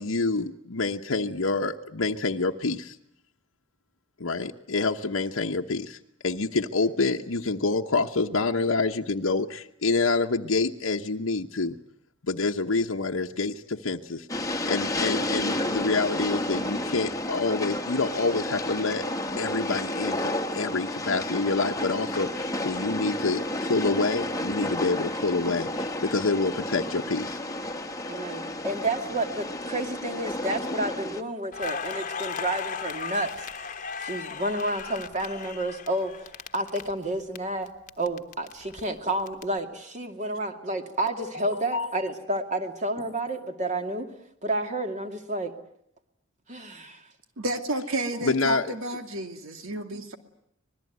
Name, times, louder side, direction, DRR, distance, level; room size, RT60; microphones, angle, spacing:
voice 1, 0.0-3.0 4.2-6.0 6.2-11.8 12.2-14.3 14.6-19.0 19.4-27.4 41.2-41.5 41.7-41.9 48.2-48.7, left 3 dB, 75° left, 2 dB, 1.1 m, -27 dB
Train, 14.3-31.2, left 1 dB, 15° left, 1.2 m, -31 dB
voice 2, 28.1-33.3 33.6-36.1 36.5-37.7 38.0-44.1 44.4-45.5 46.5-47.0 48.1-48.2, right 1 dB, 35° right, 5 dB, 2.4 m, -30 dB
Crackle, 31.5-37.4 37.7-39.4, left 6 dB, 40° left, 1.2 m, -36 dB
voice 3, 47.4-50.2, right 2 dB, 85° right, 7 dB, 2.4 m, -31 dB
26.0 x 20.5 x 9.4 m, 0.72 s
head